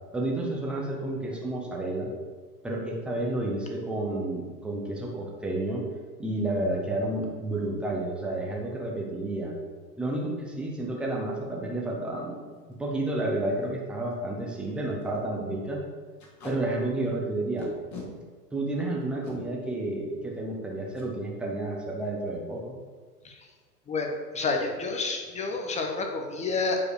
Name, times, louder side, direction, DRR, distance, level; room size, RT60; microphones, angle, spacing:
voice 1, 0.1-2.1 2.6-5.8 6.2-9.6 10.0-12.4 12.7-15.8 16.4-17.7 18.5-22.7, right 2 dB, ahead, -1 dB, 0.3 m, -30 dB
Packing tape duct tape, 12.5-12.7 13.2-13.3 13.5-13.6 14.1-14.2 14.5-14.7 15.0-15.2 16.2-16.6 17.6-18.1 19.0-19.4 20.9-21.1 21.4-21.6 21.9-22.3, left 3 dB, 35° left, 2.5 m, -42 dB
voice 2, 23.9-26.8, left 3 dB, 15° left, 3 dB, 1.0 m, -29 dB
8.8 x 4.8 x 4.7 m, 1.5 s
hypercardioid pair, 110°, 49 cm